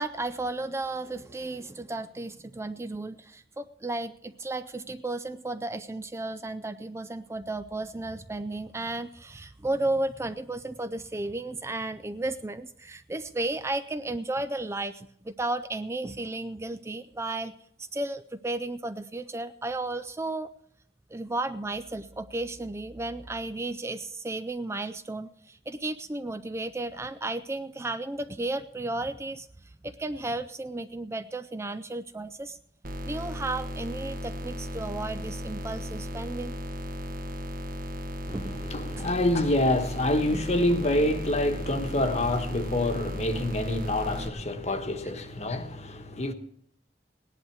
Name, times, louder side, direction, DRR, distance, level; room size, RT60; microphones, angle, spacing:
voice 1, 0.0-17.5 17.8-20.5 21.1-32.6 33.0-36.5 38.3-38.6 39.0-39.1 40.3-40.4 44.7-44.8, right 2 dB, 15° right, 0.4 m, -34 dB
sound 1, 32.8-44.3, equal, 50° right, 1.3 m, -36 dB
voice 2, 38.3-46.3, left 1 dB, 40° left, 1.2 m, -27 dB
17.5 x 10.5 x 4.7 m
head